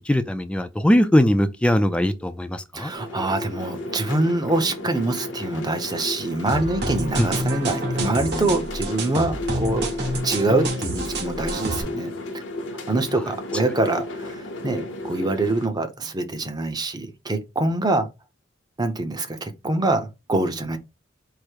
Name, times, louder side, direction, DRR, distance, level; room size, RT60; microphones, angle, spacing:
voice 1, 0.1-2.9 7.2-7.3, equal, 5° left, 0.3 m, -20 dB
voice 2, 2.7-9.9 10.2-12.4 12.9-18.1 18.8-20.8, right 2 dB, 20° right, 0.7 m, -25 dB
sound 1, 2.9-15.7, left 2 dB, 75° left, 0.9 m, -33 dB
sound 2, 6.5-11.8, right 1 dB, 60° right, 1.4 m, -28 dB
4.8 x 2.1 x 4.5 m
head